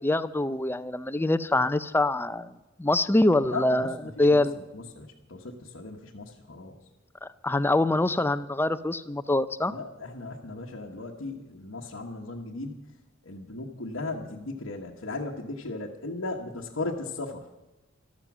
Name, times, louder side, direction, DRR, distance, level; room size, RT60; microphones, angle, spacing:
voice 1, 0.0-2.5 2.8-4.5 7.4-9.7, left 2 dB, 10° left, 13 dB, 0.5 m, -24 dB
voice 2, 3.5-4.5 4.7-6.8 9.7-12.8 13.2-17.4, left 2 dB, 90° left, -3 dB, 1.3 m, -36 dB
13.5 x 13.0 x 6.1 m, 1.0 s
head